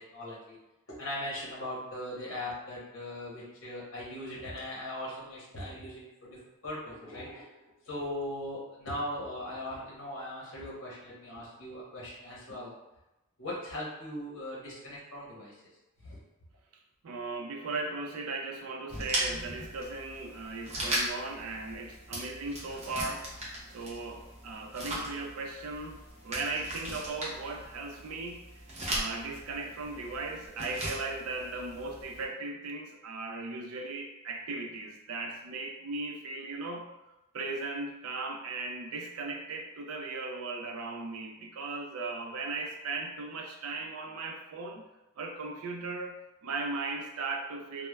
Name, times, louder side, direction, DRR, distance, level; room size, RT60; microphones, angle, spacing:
voice 1, 0.1-0.6 1.0-6.4 6.6-7.5 7.8-12.7 13.4-15.6 16.0-16.2, left 1 dB, 65° left, -6 dB, 0.8 m, -39 dB
voice 2, 17.0-23.3 23.7-28.4 28.9-36.9 37.3-44.9 45.2-46.2 46.4-47.9, right 3 dB, 80° right, 3 dB, 0.4 m, -37 dB
sound 1, 18.9-32.2, right 1 dB, 30° right, 0.6 m, -38 dB
3.0 x 2.1 x 2.3 m, 0.95 s
head